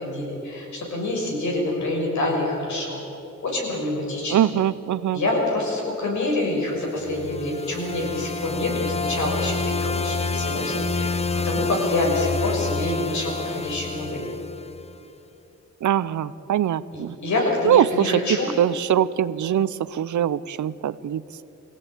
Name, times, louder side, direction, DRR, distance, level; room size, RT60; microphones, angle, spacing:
voice 1, 0.0-3.0 3.4-4.4 5.1-14.2 16.9-18.5, left 2 dB, 70° left, -1 dB, 6.2 m, -26 dB
voice 2, 4.3-5.2 15.8-17.2 17.6-18.2 18.6-21.4, right 10 dB, 75° right, 16 dB, 0.7 m, -22 dB
sound 1, 6.8-15.0, left 3 dB, 20° left, 0.6 m, -28 dB
23.5 x 16.5 x 9.1 m, 2.8 s
wide cardioid pair, 180°, 30 cm